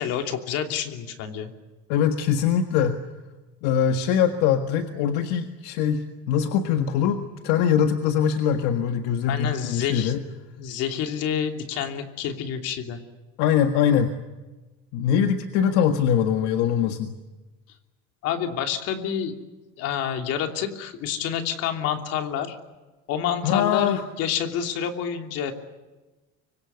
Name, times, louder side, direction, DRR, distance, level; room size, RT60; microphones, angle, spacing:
voice 1, 0.0-1.5 9.3-10.1 10.6-13.0 18.2-19.3 19.8-22.6 23.1-25.5, left 8 dB, 55° left, 5 dB, 3.0 m, -28 dB
voice 2, 1.9-3.0 3.6-10.2 13.4-14.1 14.9-17.1 23.4-24.0, left 8 dB, 75° left, 6 dB, 1.7 m, -22 dB
25.0 x 25.0 x 8.1 m, 1.2 s
cardioid pair, 175°, 30 cm